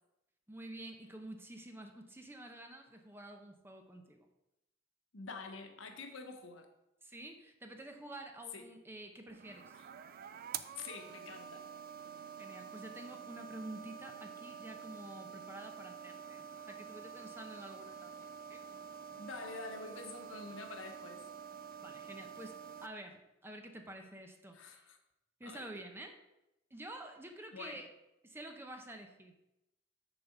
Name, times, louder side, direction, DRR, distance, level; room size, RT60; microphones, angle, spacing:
voice 1, 0.5-4.3 7.0-9.7 12.4-18.7 21.8-22.6 22.8-24.8 25.4-26.2 26.7-27.9 28.2-29.3, right 1 dB, 10° right, 5 dB, 0.7 m, -49 dB
voice 2, 5.1-6.7 8.5-8.6 9.7-9.8 10.8-11.7 19.2-21.2 24.5-25.0 25.4-25.7 27.5-27.8, left 3 dB, 85° left, 5 dB, 1.0 m, -47 dB
sound 1, 9.3-22.9, right 7 dB, 50° right, 0.4 m, -48 dB
6.6 x 4.0 x 5.9 m, 0.91 s
head